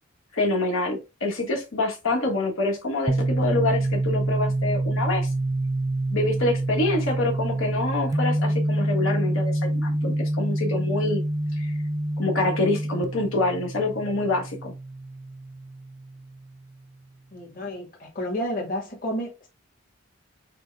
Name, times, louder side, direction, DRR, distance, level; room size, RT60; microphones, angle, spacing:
voice 1, 0.3-5.3 6.1-11.2 11.6-11.8 12.2-14.7, left 2 dB, 85° left, 1.3 m, -26 dB
sound 1, 3.1-16.7, right 1 dB, 15° right, 0.3 m, -27 dB
voice 2, 17.3-19.5, equal, 40° left, 1.5 m, -31 dB
6.0 x 2.2 x 3.3 m
head